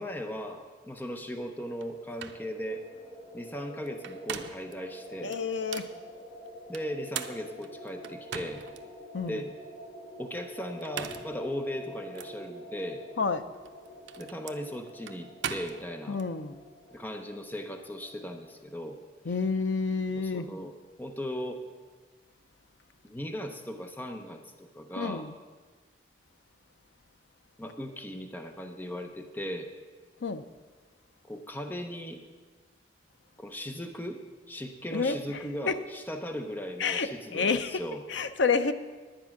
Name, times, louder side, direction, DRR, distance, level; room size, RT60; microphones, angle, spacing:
voice 1, 0.0-2.8 3.3-5.4 6.7-8.6 9.3-9.5 10.2-13.0 14.2-16.2 16.9-19.0 20.2-20.7 21.0-21.6 23.0-25.3 27.6-29.7 31.2-32.2 33.4-38.0, equal, 10° left, 0.6 m, -38 dB
sound 1, 1.7-18.6, equal, 45° left, 3.7 m, -47 dB
sound 2, 1.8-1.9 2.2-2.4 3.9-4.7 5.3-5.9 6.7-8.8 9.3-9.4 10.7-11.4 12.1-12.3 13.5-16.3, right 8 dB, 75° right, 0.6 m, -40 dB
voice 2, 5.2-5.9 9.1-9.4 13.2-13.4 16.1-16.6 19.3-20.5 25.0-25.3 30.2-30.5 34.9-35.4 35.7-35.8 36.8-37.8 38.1-38.7, left 5 dB, 85° left, 0.6 m, -29 dB
10.5 x 9.8 x 5.9 m
head